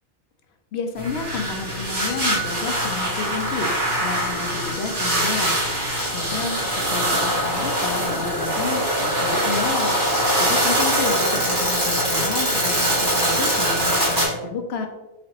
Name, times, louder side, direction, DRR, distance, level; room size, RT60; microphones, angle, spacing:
voice 1, 0.7-3.7 4.0-5.5 6.1-9.9 10.4-14.9, left 5 dB, 75° left, 5 dB, 0.8 m, -30 dB
sound 1, 1.0-14.2, right 1 dB, 50° right, 1.6 m, -23 dB
5.0 x 2.9 x 2.9 m, 1.1 s
omnidirectional pair, 1.1 m